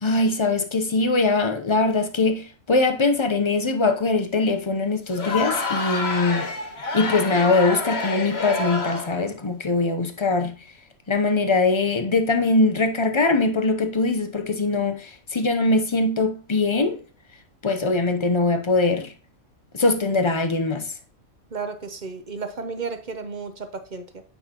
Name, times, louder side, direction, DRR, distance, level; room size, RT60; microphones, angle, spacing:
voice 1, 0.0-6.5 6.9-10.5 11.1-17.0 17.6-19.1 19.7-20.9, left 3 dB, 30° left, 0.5 m, -22 dB
Crowd, 5.1-9.2, left 3 dB, 50° left, 1.4 m, -28 dB
voice 2, 21.5-24.2, right 4 dB, 45° right, 0.7 m, -33 dB
9.3 x 5.7 x 2.9 m
omnidirectional pair, 1.5 m